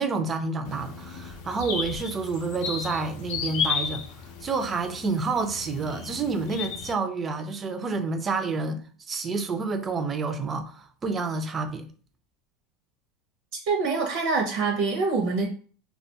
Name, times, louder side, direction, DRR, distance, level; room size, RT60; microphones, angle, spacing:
voice 1, 0.0-4.0 4.4-8.8 9.1-11.9, right 4 dB, 25° right, 0.4 m, -29 dB
sound 1, 0.6-6.9, left 6 dB, 70° left, 0.5 m, -34 dB
voice 2, 13.7-15.5, right 4 dB, 65° right, 0.6 m, -25 dB
2.3 x 2.2 x 2.7 m
supercardioid pair, 115°, 0 cm